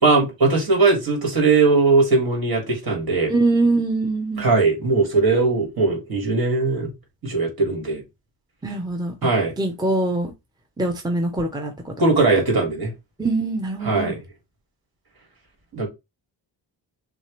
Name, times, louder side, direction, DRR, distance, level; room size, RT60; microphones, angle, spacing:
voice 1, 0.0-3.3 4.4-6.9 7.2-8.0 9.2-9.5 12.0-12.9 13.8-14.2 15.7-15.9, right 3 dB, 55° right, 2.4 m, -19 dB
voice 2, 3.3-4.5 8.6-9.1 9.6-10.3 10.8-11.9 13.2-14.1, right 2 dB, 10° right, 0.8 m, -23 dB
6.2 x 2.5 x 3.3 m
wide cardioid pair, 105°, 43 cm